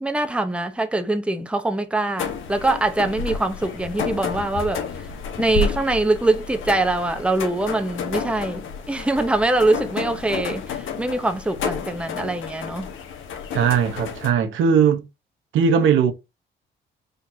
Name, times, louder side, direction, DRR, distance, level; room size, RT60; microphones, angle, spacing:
voice 1, 0.0-4.8 5.4-12.9, right 2 dB, 5° right, 0.8 m, -23 dB
sound 1, 2.2-14.3, left 5 dB, 80° left, 1.3 m, -31 dB
voice 2, 13.5-15.0 15.5-16.1, right 7 dB, 80° right, 1.0 m, -18 dB
5.0 x 3.9 x 2.7 m
cardioid pair, 90°, 20 cm